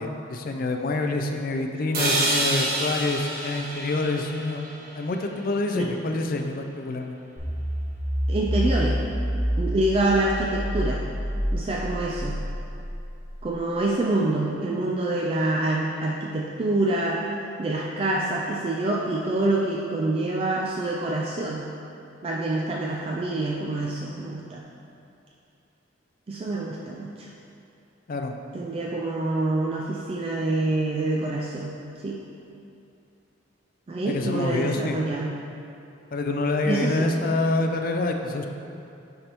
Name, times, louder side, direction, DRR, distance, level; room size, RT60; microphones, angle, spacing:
voice 1, 0.0-4.7 4.9-7.2 28.1-28.3 34.0-35.0 36.1-38.5, left 2 dB, 45° left, 4 dB, 0.4 m, -27 dB
sound 1, 1.9-6.0, right 1 dB, 50° right, 1.3 m, -28 dB
sound 2, 7.4-13.6, equal, ahead, 1.3 m, -28 dB
voice 2, 8.3-9.0 9.6-11.0 11.5-12.4 13.4-17.2 17.6-21.7 22.2-24.6 26.3-27.3 28.5-31.8 32.0-32.2 33.9-35.3 36.7-37.2, right 2 dB, 30° right, -2 dB, 0.3 m, -26 dB
10.0 x 3.4 x 2.9 m, 2.7 s
head